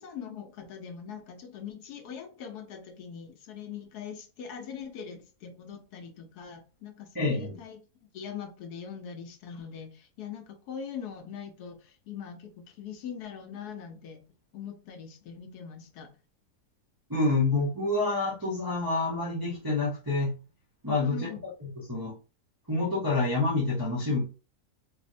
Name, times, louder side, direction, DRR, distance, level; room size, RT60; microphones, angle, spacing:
voice 1, 0.0-7.8 8.1-14.2 14.5-16.1 21.0-21.4, left 7 dB, 85° left, 5 dB, 1.2 m, -42 dB
voice 2, 7.1-7.6 17.1-20.3 20.8-22.1 22.7-24.2, left 3 dB, 25° right, -5 dB, 0.4 m, -28 dB
3.9 x 2.1 x 2.6 m, 0.33 s
omnidirectional pair, 1.7 m